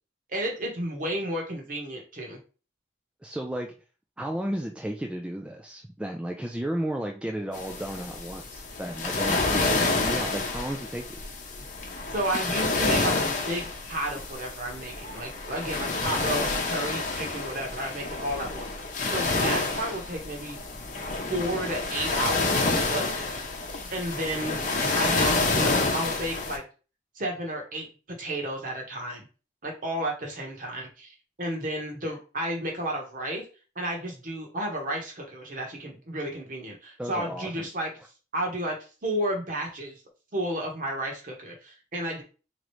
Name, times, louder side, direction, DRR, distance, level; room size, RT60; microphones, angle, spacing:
voice 1, 0.3-2.4 9.2-9.4 12.1-13.6 13.9-18.7 19.1-20.6 21.3-23.0 23.9-24.6 24.9-26.6 27.1-29.2 29.6-33.4 33.7-37.9 38.3-38.8 39.0-40.0 40.3-42.2, right 1 dB, 45° right, 0 dB, 1.2 m, -32 dB
voice 2, 3.2-3.7 4.2-11.2 37.0-37.7, right 1 dB, 5° right, 2 dB, 0.3 m, -33 dB
sound 1, 7.5-26.6, left 3 dB, 45° left, 0.8 m, -28 dB
3.8 x 3.0 x 3.1 m, 0.35 s
head